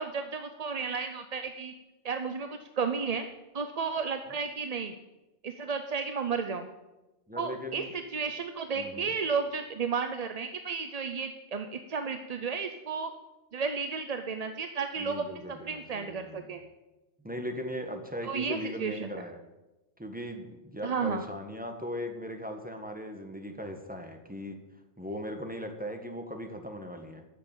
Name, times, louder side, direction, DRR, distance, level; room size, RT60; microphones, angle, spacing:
voice 1, 0.0-1.7 2.0-3.3 3.5-4.9 5.4-6.7 7.4-13.1 13.5-16.6 18.2-19.1 20.8-21.2, right 5 dB, 40° right, 8 dB, 0.7 m, -33 dB
voice 2, 7.3-7.9 8.7-9.1 15.0-16.6 17.2-19.4 20.0-24.6 25.0-27.2, equal, 10° right, 5 dB, 1.4 m, -39 dB
12.5 x 6.9 x 8.8 m, 1.1 s
omnidirectional pair, 1.2 m